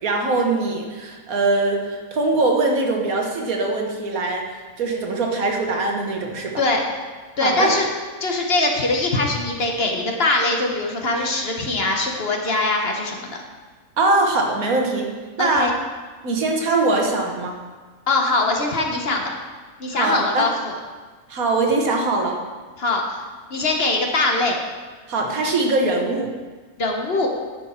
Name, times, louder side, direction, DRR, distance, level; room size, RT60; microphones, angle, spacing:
voice 1, 0.0-6.6 7.4-7.7 14.0-15.1 15.4-15.7 16.2-17.6 19.9-20.5 21.3-22.4 25.1-26.3, right 2 dB, 85° right, 1 dB, 1.7 m, -22 dB
voice 2, 7.4-7.9 8.2-13.4 15.4-15.7 18.1-19.3 19.8-20.7 22.8-23.2 23.5-24.6 26.8-27.3, left 2 dB, 50° left, 1 dB, 1.2 m, -22 dB
10.5 x 6.3 x 4.3 m, 1.4 s
omnidirectional pair, 1.5 m